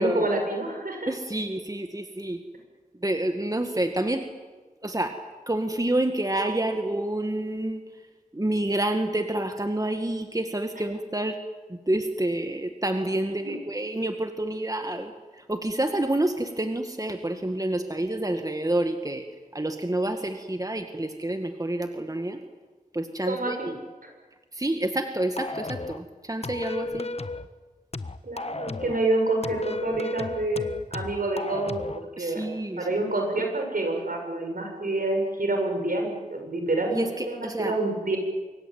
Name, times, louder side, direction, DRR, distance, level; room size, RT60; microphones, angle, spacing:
voice 1, 0.0-1.1 10.8-10.9 13.4-13.6 23.2-23.7 24.0-24.1 26.8-26.9 28.2-31.8 32.2-32.4 32.8-38.2, right 2 dB, 70° right, 2 dB, 7.3 m, -27 dB
voice 2, 1.1-2.4 3.0-4.2 4.8-5.1 5.5-7.8 8.3-11.4 11.9-15.1 15.5-19.2 19.5-22.4 22.9-23.6 24.6-27.1 32.2-32.8 36.9-37.0 37.4-37.7, right 1 dB, 25° right, 6 dB, 2.0 m, -28 dB
sound 1, 25.4-26.0 26.4-27.5 27.9-29.0 29.4-32.0, left 3 dB, 45° left, 1.3 m, -34 dB
25.5 x 23.5 x 9.0 m, 1.3 s
wide cardioid pair, 45°, 15 cm